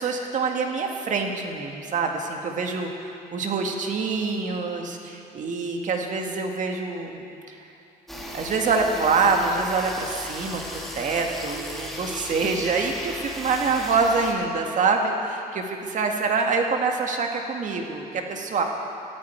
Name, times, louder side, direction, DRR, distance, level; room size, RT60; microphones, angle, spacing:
voice 1, 0.0-7.2 7.5-7.6 8.3-18.6, right 4 dB, 50° right, 2 dB, 2.0 m, -25 dB
sound 1, 8.1-14.3, equal, ahead, 2.5 m, -36 dB
18.5 x 14.0 x 4.7 m, 2.6 s
cardioid pair, 110°, 17 cm